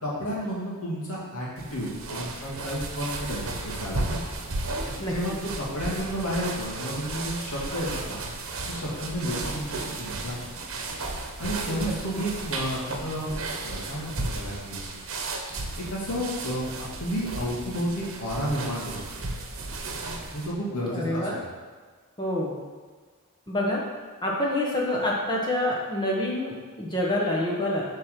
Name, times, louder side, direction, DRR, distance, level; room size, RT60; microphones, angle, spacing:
voice 1, 0.0-4.2 5.0-8.2 8.7-10.4 11.4-14.8 15.8-19.3 20.3-21.3, equal, 70° left, -6 dB, 2.7 m, -31 dB
sound 1, 1.6-20.5, right 2 dB, 60° right, 1.1 m, -34 dB
voice 2, 20.9-21.4 22.2-22.6 23.5-23.8 24.2-27.8, left 1 dB, 20° left, -3 dB, 1.1 m, -27 dB
8.4 x 4.6 x 5.8 m, 1.5 s
head